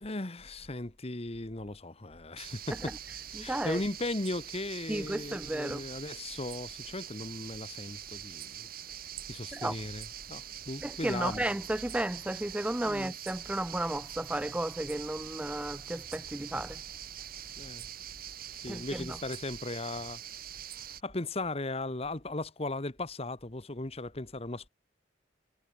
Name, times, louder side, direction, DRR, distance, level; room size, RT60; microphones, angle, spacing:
voice 1, 0.0-2.9 3.4-8.7 9.3-11.4 12.8-13.1 17.6-17.9 18.5-20.2 20.7-24.7, left 2 dB, 35° left, 1.4 m, -37 dB
sound 1, 2.4-21.0, right 10 dB, 50° right, 2.6 m, -44 dB
voice 2, 3.4-3.8 4.9-5.8 9.5-9.7 10.8-16.8 18.7-19.2, right 1 dB, 5° right, 0.3 m, -33 dB
head